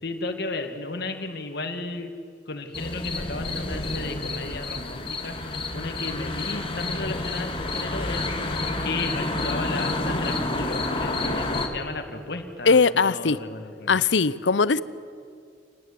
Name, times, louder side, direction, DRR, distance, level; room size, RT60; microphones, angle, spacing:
voice 1, 0.0-2.1 2.5-14.0, left 3 dB, 60° left, 5 dB, 2.1 m, -34 dB
sound 1, 2.7-11.7, left 2 dB, 30° left, 2.1 m, -29 dB
voice 2, 12.7-13.4 13.9-14.8, left 4 dB, 80° left, 18 dB, 0.7 m, -20 dB
27.5 x 19.0 x 8.7 m, 2.3 s
head